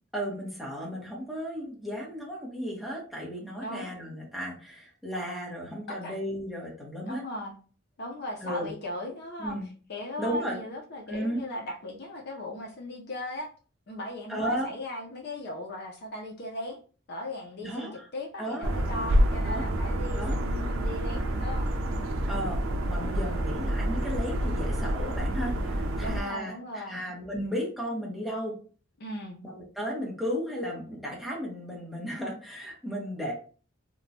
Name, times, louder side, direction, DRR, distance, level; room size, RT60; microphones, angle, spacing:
voice 1, 0.1-7.2 8.4-8.7 9.4-9.7 10.2-10.6 11.1-11.4 14.3-14.7 17.6-18.0 18.4-18.7 19.4-19.7 20.1-20.4 22.3-22.6 22.9-28.5 29.4-33.3, equal, ahead, -5 dB, 0.9 m, -34 dB
voice 2, 3.6-3.9 5.9-6.1 7.1-7.5 8.0-9.6 9.9-13.5 13.9-16.8 17.1-21.7 23.1-23.5 26.0-27.0 29.0-29.4, left 1 dB, 55° left, 1 dB, 0.5 m, -38 dB
sound 1, 18.6-26.2, equal, 85° right, 0.5 m, -28 dB
3.0 x 2.2 x 2.6 m, 0.40 s
head